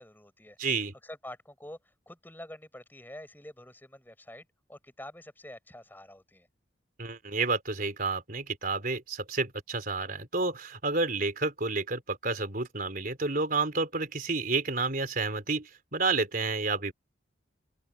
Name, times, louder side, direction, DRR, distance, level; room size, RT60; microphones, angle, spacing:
voice 1, 0.0-0.6 1.0-1.8 2.1-6.5, left 1 dB, 10° left, 6.7 m, -47 dB
voice 2, 0.6-0.9 7.0-16.9, right 3 dB, 45° right, 4.0 m, -30 dB
head